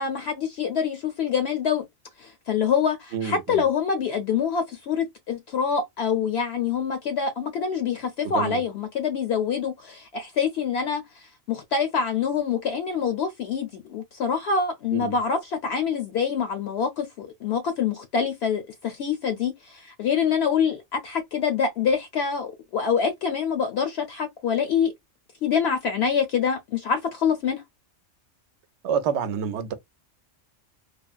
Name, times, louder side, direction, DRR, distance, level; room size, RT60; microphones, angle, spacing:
voice 1, 0.0-1.8 2.2-24.9 25.4-27.6, left 6 dB, 65° left, 0.8 m, -26 dB
voice 2, 3.1-3.6 8.2-8.6 14.9-15.2 28.8-29.7, right 7 dB, 70° right, 0.8 m, -28 dB
3.3 x 2.0 x 2.3 m
omnidirectional pair, 1.3 m